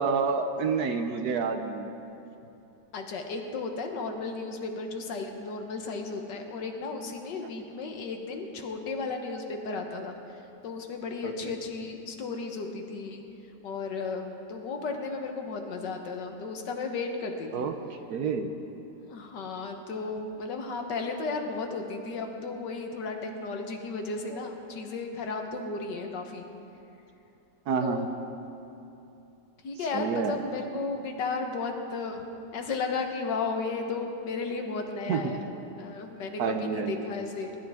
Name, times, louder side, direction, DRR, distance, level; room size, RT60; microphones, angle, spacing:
voice 1, 0.0-1.9 11.2-11.5 17.5-17.7 18.1-18.5 24.3-24.4 27.7-28.1 29.9-30.3 35.1-35.3 36.4-37.1, right 5 dB, 65° right, 7 dB, 1.2 m, -29 dB
voice 2, 2.9-10.2 10.6-13.2 13.6-17.7 19.1-26.5 27.8-28.1 29.6-32.2 32.5-35.4 35.8-37.6, left 4 dB, 75° left, 4 dB, 1.8 m, -34 dB
21.5 x 12.0 x 3.5 m, 2.8 s
omnidirectional pair, 2.0 m